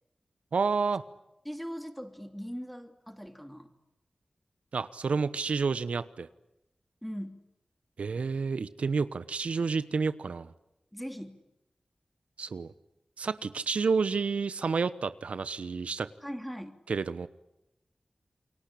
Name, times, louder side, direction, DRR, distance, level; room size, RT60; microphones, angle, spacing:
voice 1, 0.5-1.0 4.7-6.3 8.0-10.5 12.4-12.7 13.2-16.1 16.9-17.3, right 5 dB, 90° right, 14 dB, 1.1 m, -30 dB
voice 2, 1.4-3.7 7.0-7.4 10.9-11.4 16.2-16.8, equal, ahead, 8 dB, 3.0 m, -40 dB
29.0 x 23.5 x 8.6 m, 0.87 s
wide cardioid pair, 80°, 2 cm